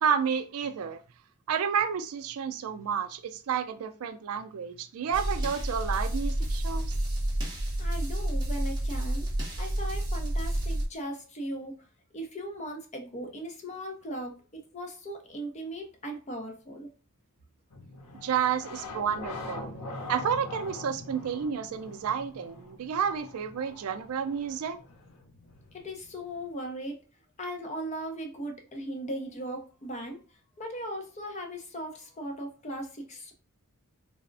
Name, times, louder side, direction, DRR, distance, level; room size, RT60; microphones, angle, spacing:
voice 1, 0.0-1.0 1.5-6.9 18.1-19.7 20.1-24.8, right 7 dB, 75° right, 0.4 m, -30 dB
sound 1, 5.1-10.9, right 1 dB, 20° right, 0.7 m, -30 dB
voice 2, 7.8-9.3 9.6-11.7 12.1-14.3 14.7-16.9 25.7-27.0 27.4-33.3, right 1 dB, 30° left, 0.5 m, -38 dB
sound 2, 17.7-26.5, left 2 dB, 85° left, 0.6 m, -43 dB
3.3 x 2.0 x 2.5 m
head